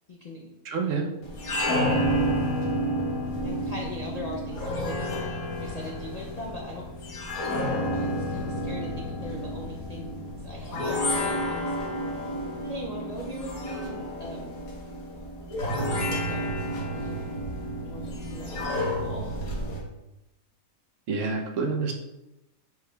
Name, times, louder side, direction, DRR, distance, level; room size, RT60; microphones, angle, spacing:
voice 1, 0.1-0.5 1.7-2.1 3.4-6.9 7.9-12.0 12.6-14.5 15.9-16.5 16.9-17.3 17.8-19.4, left 1 dB, 60° left, -2 dB, 0.4 m, -40 dB
voice 2, 0.6-1.1 21.1-21.9, right 4 dB, 65° right, 3 dB, 1.0 m, -27 dB
sound 1, 1.2-19.8, equal, 75° left, 1.5 m, -30 dB
sound 2, 12.6-13.0 14.5-14.6 16.1-16.6, right 2 dB, 90° right, 1.3 m, -45 dB
4.8 x 4.7 x 2.2 m, 0.95 s
omnidirectional pair, 1.5 m